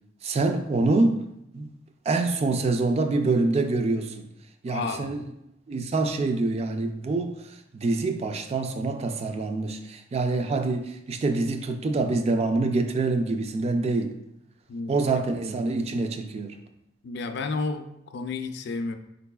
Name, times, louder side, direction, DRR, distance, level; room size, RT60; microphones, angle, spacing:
voice 1, 0.2-1.2 1.5-1.8 2.1-4.2 4.6-5.2 5.7-7.3 7.7-14.1 14.9-16.6, right 3 dB, 30° right, 0.3 m, -25 dB
voice 2, 4.7-5.1 14.7-15.2 17.0-19.0, left 4 dB, 60° left, 0.4 m, -32 dB
4.7 x 3.9 x 2.3 m
head